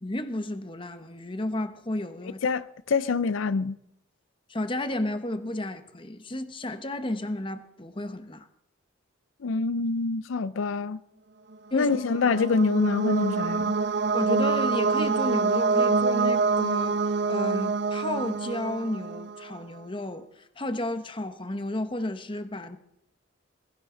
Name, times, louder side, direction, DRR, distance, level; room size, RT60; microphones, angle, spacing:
voice 1, 0.0-2.4 4.5-8.5 11.7-11.9 14.1-17.0 17.3-20.3 20.6-22.8, left 1 dB, 25° left, 1.0 m, -32 dB
voice 2, 2.4-3.8 9.4-11.0 11.7-13.7, left 4 dB, 80° left, 0.5 m, -25 dB
sound 1, 11.8-19.5, right 4 dB, 60° right, 0.7 m, -26 dB
20.5 x 16.0 x 3.9 m
head